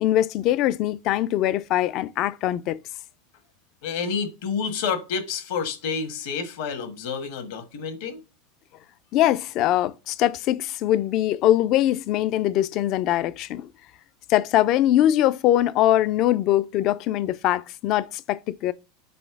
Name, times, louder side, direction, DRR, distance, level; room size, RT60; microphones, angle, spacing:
voice 1, 0.0-2.8 9.1-13.7 14.3-18.7, left 13 dB, 50° left, 0.4 m, -22 dB
voice 2, 3.8-8.2, left 6 dB, 70° left, 1.3 m, -29 dB
4.5 x 4.2 x 5.7 m
hypercardioid pair, 105°, 0 cm